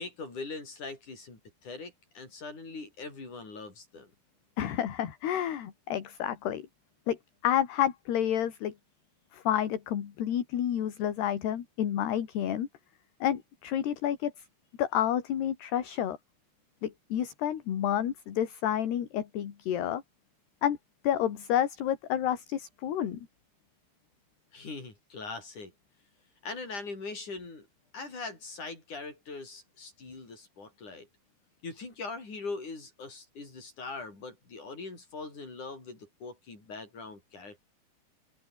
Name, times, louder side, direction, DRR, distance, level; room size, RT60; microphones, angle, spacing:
voice 1, 0.0-4.1 24.5-25.7 26.4-27.7 27.9-31.1 31.6-37.6, left 3 dB, 40° left, 9.3 m, -41 dB
voice 2, 4.6-6.7 7.1-7.2 7.4-8.7 9.3-12.7 13.2-14.5 14.8-16.2 16.8-20.0 20.6-20.8 21.0-23.2, left 10 dB, 60° left, 4.3 m, -29 dB
open air
omnidirectional pair, 5.5 m